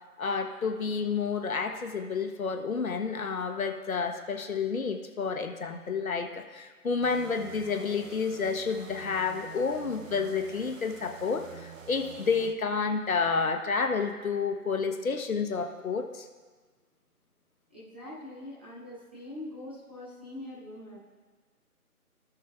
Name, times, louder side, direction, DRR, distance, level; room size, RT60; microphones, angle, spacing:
voice 1, 0.2-16.3, left 5 dB, 60° left, 4 dB, 1.2 m, -30 dB
sound 1, 7.0-12.5, right 7 dB, 55° right, 0.9 m, -47 dB
voice 2, 17.7-21.0, left 1 dB, 5° right, -11 dB, 1.0 m, -43 dB
17.0 x 6.4 x 2.4 m, 1.4 s
figure-of-eight pair, 165°, 46 cm